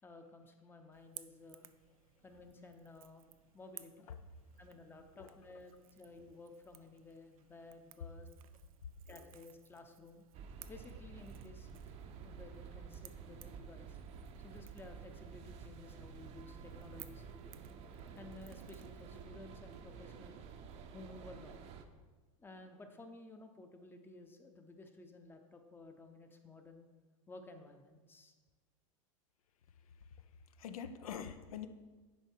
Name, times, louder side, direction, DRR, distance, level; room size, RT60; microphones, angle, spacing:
voice 1, 0.0-1.7 2.2-3.2 3.5-4.1 4.6-8.3 9.1-10.2 10.7-11.7 12.2-14.0 14.4-17.5 18.2-20.4 20.9-21.6 22.4-26.9 27.3-28.3, left 2 dB, 10° left, 5 dB, 0.6 m, -54 dB
Crackle / Crack, 0.9-19.2, right 12 dB, 80° right, 0.5 m, -60 dB
sound 1, 10.3-21.8, right 6 dB, 35° right, 0.7 m, -51 dB
voice 2, 30.6-31.7, left 8 dB, 90° left, 10 dB, 0.6 m, -45 dB
10.0 x 3.8 x 4.6 m, 1.3 s
supercardioid pair, 125°, 18 cm